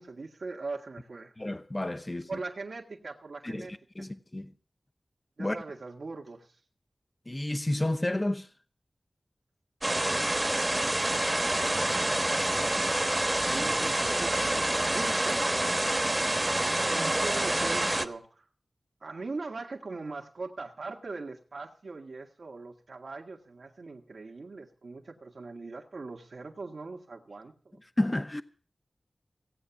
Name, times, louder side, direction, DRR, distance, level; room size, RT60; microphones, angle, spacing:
voice 1, 0.0-1.3 2.3-4.1 5.4-6.6 13.5-15.6 16.6-18.4 19.0-27.8, right 3 dB, 75° right, 1.6 m, -41 dB
voice 2, 1.4-2.4 3.4-3.7 4.0-4.5 5.4-5.6 7.3-8.5 28.0-28.4, left 1 dB, 25° left, 0.8 m, -30 dB
sound 1, 9.8-18.1, right 1 dB, 25° right, 1.1 m, -27 dB
16.5 x 8.9 x 7.0 m
wide cardioid pair, 80°, 0 cm